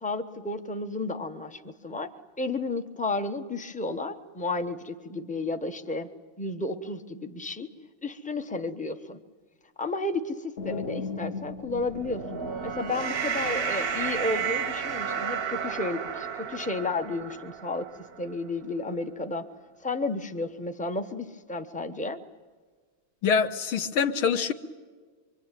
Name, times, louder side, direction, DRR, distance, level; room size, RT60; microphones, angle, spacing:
voice 1, 0.0-2.1 2.4-6.1 6.4-7.7 8.0-9.2 9.8-12.2 12.6-17.9 18.2-19.5 19.8-22.2, left 2 dB, 10° left, 6 dB, 0.5 m, -32 dB
sound 1, 10.6-13.4, left 5 dB, 45° left, 0.8 m, -37 dB
sound 2, 11.7-18.2, right 6 dB, 45° right, 0.8 m, -32 dB
voice 2, 23.2-24.5, left 6 dB, 75° left, 6 dB, 2.1 m, -25 dB
25.5 x 24.5 x 9.1 m, 1.5 s
omnidirectional pair, 2.3 m